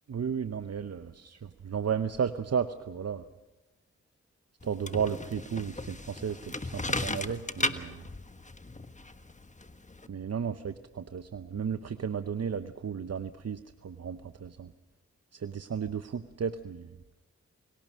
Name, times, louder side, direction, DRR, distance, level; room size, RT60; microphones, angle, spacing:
voice 1, 0.1-3.2 4.6-8.0 10.1-14.7 15.3-16.9, right 7 dB, 60° right, 11 dB, 0.9 m, -34 dB
sound 1, 4.6-10.1, left 2 dB, 25° left, 1.4 m, -36 dB
27.5 x 18.0 x 6.3 m, 1.1 s
cardioid pair, 50°, 29 cm